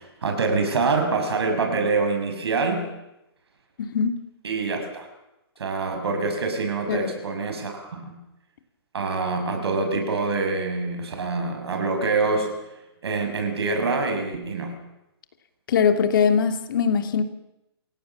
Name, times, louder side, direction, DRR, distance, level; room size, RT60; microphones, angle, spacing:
voice 1, 0.0-2.9 4.4-5.1 5.6-8.2 8.9-12.5 13.0-14.8, right 3 dB, 75° right, 5 dB, 7.0 m, -25 dB
voice 2, 3.8-4.2 6.9-7.1 15.7-17.2, left 6 dB, 50° left, 7 dB, 2.6 m, -21 dB
28.5 x 16.5 x 7.3 m, 0.90 s
hypercardioid pair, 155°, 14 cm